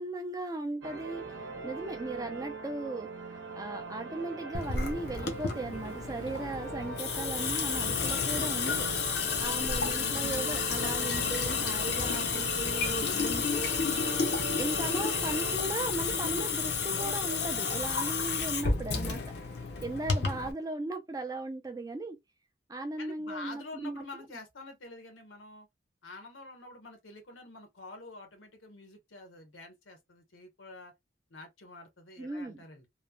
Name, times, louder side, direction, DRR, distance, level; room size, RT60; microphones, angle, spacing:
voice 1, 0.0-1.4 1.6-8.9 9.4-13.7 14.6-19.4 19.8-22.2 22.7-24.0 32.2-32.6, right 2 dB, 20° right, 0.4 m, -37 dB
sound 1, 0.8-15.6, right 3 dB, 75° right, 0.8 m, -41 dB
Water tap faucet / Sink (filling or washing) / Drip, 4.5-20.5, left 5 dB, 55° left, 0.6 m, -31 dB
voice 2, 13.0-13.5 19.6-19.8 23.0-25.7 26.0-30.9 31.3-32.9, left 2 dB, 85° left, 1.1 m, -47 dB
3.1 x 2.1 x 2.3 m
head